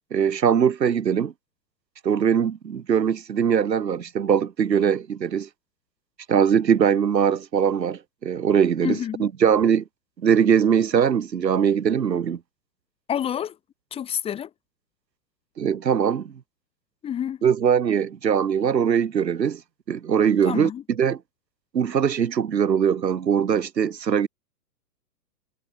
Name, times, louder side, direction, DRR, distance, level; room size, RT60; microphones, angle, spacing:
voice 1, 0.1-1.3 2.0-5.5 6.3-9.8 10.2-12.4 15.6-16.3 17.4-19.6 19.9-21.2 21.7-24.3, right 7 dB, 85° right, 7.4 m, -21 dB
voice 2, 8.8-9.2 13.1-13.6 13.9-14.5 17.0-17.4 20.4-20.8, left 9 dB, 10° left, 5.8 m, -28 dB
hypercardioid pair, 170°, 49 cm